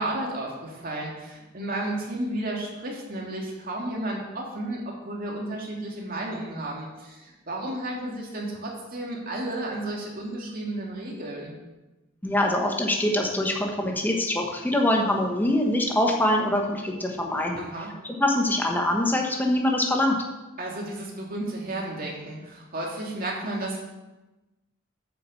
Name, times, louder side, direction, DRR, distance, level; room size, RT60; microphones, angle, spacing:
voice 1, 0.0-11.5 17.6-17.9 20.6-23.8, right 1 dB, 45° right, -2 dB, 2.5 m, -32 dB
voice 2, 12.2-17.6 18.0-20.2, left 1 dB, 10° left, 1 dB, 1.1 m, -24 dB
8.7 x 6.5 x 7.0 m, 1.1 s
head